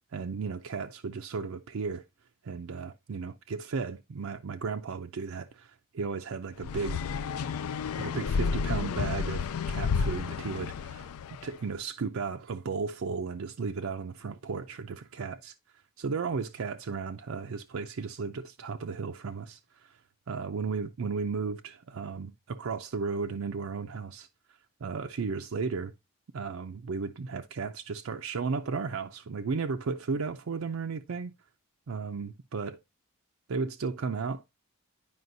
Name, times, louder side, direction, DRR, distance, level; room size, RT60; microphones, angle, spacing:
voice 1, 0.1-2.0 2.4-7.0 7.9-11.1 11.4-15.5 16.0-19.6 20.3-24.3 24.8-25.9 26.3-31.3 31.9-32.8 33.5-34.5, right 5 dB, 65° right, 0.5 m, -34 dB
sound 1, 6.6-11.5, left 5 dB, 75° left, 0.4 m, -31 dB
9.5 x 5.0 x 2.6 m
head